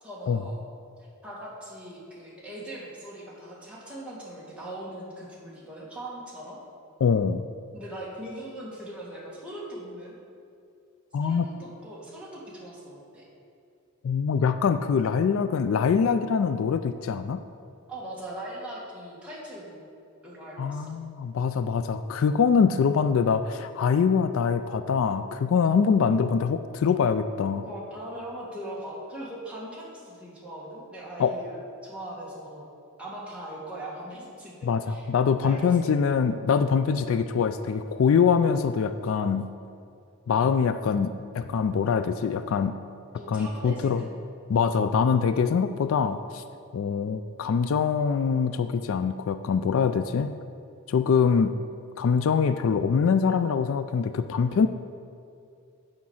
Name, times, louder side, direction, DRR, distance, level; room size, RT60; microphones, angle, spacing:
voice 1, 0.0-0.6 1.2-6.6 7.7-10.2 11.2-13.3 17.9-19.8 20.2-20.9 27.6-32.7 33.0-35.1 35.4-35.9 43.2-44.1, right 1 dB, 5° right, -7 dB, 1.9 m, -40 dB
voice 2, 7.0-7.4 11.1-11.5 14.0-17.4 20.6-27.6 31.2-31.3 34.6-39.5 40.3-42.8 43.3-44.0 44.5-46.4 46.7-50.3 50.9-51.5 52.0-54.7, left 6 dB, 65° left, 10 dB, 0.3 m, -24 dB
8.5 x 5.2 x 7.2 m, 2.4 s
head